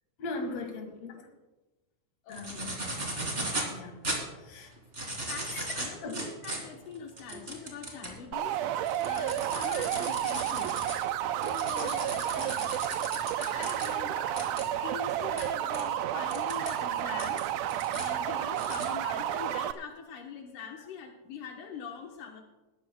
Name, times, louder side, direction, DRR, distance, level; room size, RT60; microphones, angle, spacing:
voice 1, 0.2-1.3 2.3-2.8 3.7-4.0 4.4-4.7 5.5-5.6 6.0-6.3 7.3-7.4, left 3 dB, 55° left, 2.9 m, -39 dB
voice 2, 2.2-2.6 4.7-4.8 5.3-8.6 9.0-10.8 11.4-12.7 13.4-22.4, left 6 dB, 75° left, 2.7 m, -43 dB
sound 1, 2.3-3.7 4.0-4.2 4.8-8.2 8.6-13.9 14.4-14.6 15.4-15.5 15.7-15.8 16.3-16.7 17.2-18.1 18.6-18.9, right 1 dB, 20° right, 3.0 m, -36 dB
sound 2, 8.3-19.7, right 12 dB, 85° right, 1.5 m, -31 dB
19.5 x 14.5 x 2.3 m
omnidirectional pair, 3.6 m